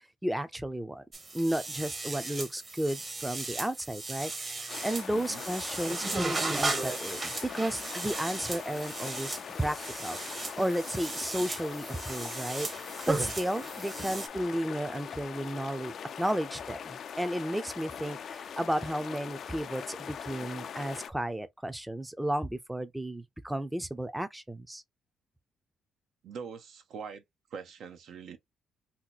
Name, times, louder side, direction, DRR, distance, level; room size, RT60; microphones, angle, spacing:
voice 1, 0.2-1.0 1.3-9.8 10.0-24.8, right 1 dB, 5° right, 0.5 m, -33 dB
sound 1, 1.1-14.3, right 3 dB, 30° right, 0.9 m, -36 dB
sound 2, 4.7-21.1, left 8 dB, 60° left, 0.3 m, -42 dB
voice 2, 5.1-5.4 14.0-14.2 26.2-27.2 27.5-28.4, right 6 dB, 75° right, 0.6 m, -43 dB
2.8 x 2.1 x 3.9 m
cardioid pair, 90°, 0 cm